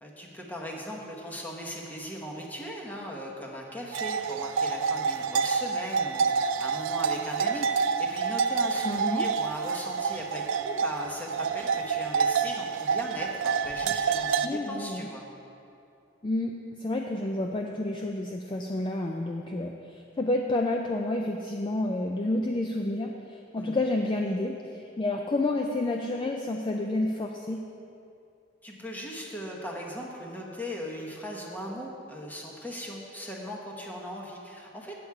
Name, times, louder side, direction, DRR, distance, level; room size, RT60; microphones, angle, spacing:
voice 1, 0.0-15.2 23.6-23.8 28.6-34.9, equal, 10° left, -2 dB, 1.1 m, -38 dB
sound 1, 3.9-14.5, right 5 dB, 90° right, 0.4 m, -28 dB
voice 2, 8.8-9.3 14.4-15.1 16.2-16.5 16.8-27.6, left 2 dB, 25° left, 2 dB, 0.4 m, -30 dB
8.5 x 8.0 x 4.7 m, 2.6 s
head